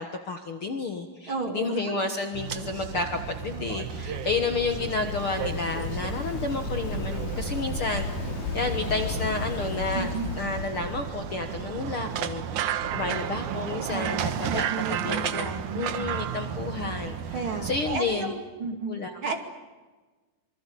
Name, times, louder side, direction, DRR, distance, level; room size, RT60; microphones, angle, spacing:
voice 1, 0.0-8.1 8.5-18.3 18.7-19.2, left 4 dB, 50° left, 6 dB, 1.8 m, -31 dB
voice 2, 1.3-2.0 4.1-4.2 9.9-10.3 13.9-14.2 14.5-16.1 17.3-19.0 19.2-19.4, right 4 dB, 40° right, 5 dB, 2.9 m, -33 dB
sound 1, 2.3-18.0, right 8 dB, 65° right, 2.5 m, -33 dB
Waves surf, 3.4-11.1, left 4 dB, 70° left, 3.8 m, -35 dB
Wind, 6.6-12.1, right 3 dB, 85° right, 5.2 m, -42 dB
26.5 x 24.5 x 8.5 m, 1.3 s
omnidirectional pair, 4.0 m